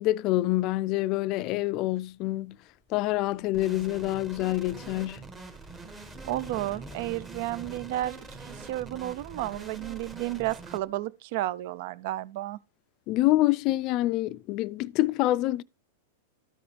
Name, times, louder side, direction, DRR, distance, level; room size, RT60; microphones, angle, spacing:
voice 1, 0.0-2.6 2.9-5.2 13.1-15.6, left 17 dB, 45° left, 0.3 m, -26 dB
sound 1, 2.6-10.9, left 1 dB, 5° left, 0.8 m, -51 dB
sound 2, 3.5-10.8, right 3 dB, 20° right, 1.5 m, -45 dB
voice 2, 6.3-12.6, right 16 dB, 60° right, 0.3 m, -32 dB
13.0 x 4.9 x 3.2 m
hypercardioid pair, 115°, 0 cm